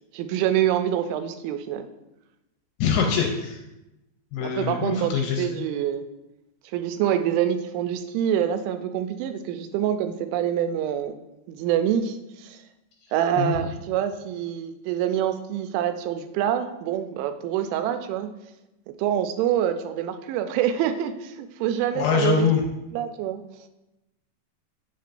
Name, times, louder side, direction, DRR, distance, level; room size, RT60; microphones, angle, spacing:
voice 1, 0.1-1.9 4.4-6.0 6.7-11.2 11.5-12.6 13.1-18.3 19.0-22.5 22.9-23.4, right 10 dB, 90° right, 9 dB, 3.0 m, -26 dB
voice 2, 2.8-3.6 4.3-5.7 13.4-13.5 21.9-22.6, left 6 dB, 80° left, 1 dB, 2.5 m, -23 dB
8.2 x 7.6 x 2.5 m, 0.94 s
omnidirectional pair, 5.3 m